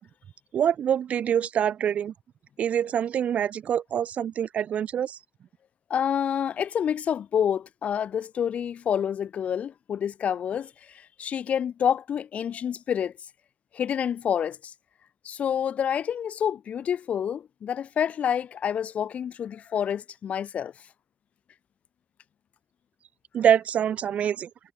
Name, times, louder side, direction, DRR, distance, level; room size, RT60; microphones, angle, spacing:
voice 1, 0.5-2.1 2.6-5.2 23.3-24.5, right 9 dB, 85° right, 0.8 m, -25 dB
voice 2, 5.9-10.7 11.2-13.1 13.7-14.7 15.2-20.7, left 8 dB, 80° left, 1.1 m, -28 dB
cardioid pair, 90°, 2 cm